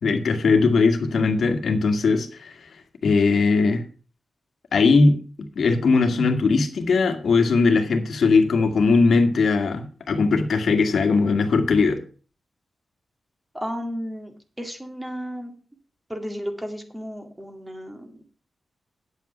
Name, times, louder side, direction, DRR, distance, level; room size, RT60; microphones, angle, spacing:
voice 1, 0.0-2.7 3.0-3.8 4.7-5.2 5.6-12.0, left 4 dB, 70° left, 1.8 m, -19 dB
voice 2, 13.5-15.5 16.1-18.3, equal, 10° right, 2.2 m, -33 dB
9.4 x 8.1 x 5.6 m
wide cardioid pair, 125°, 0 cm